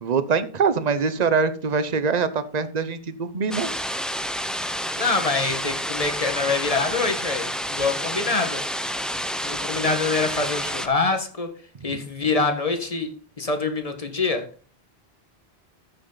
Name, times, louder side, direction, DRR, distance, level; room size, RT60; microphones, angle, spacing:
voice 1, 0.0-3.7 11.9-12.0, right 5 dB, 45° right, 12 dB, 0.9 m, -23 dB
sound 1, 3.5-10.9, equal, ahead, 0.7 m, -29 dB
voice 2, 5.0-8.6 9.4-11.5 11.8-14.5, left 3 dB, 35° left, 6 dB, 1.6 m, -25 dB
14.0 x 6.5 x 4.0 m, 0.39 s
omnidirectional pair, 1.1 m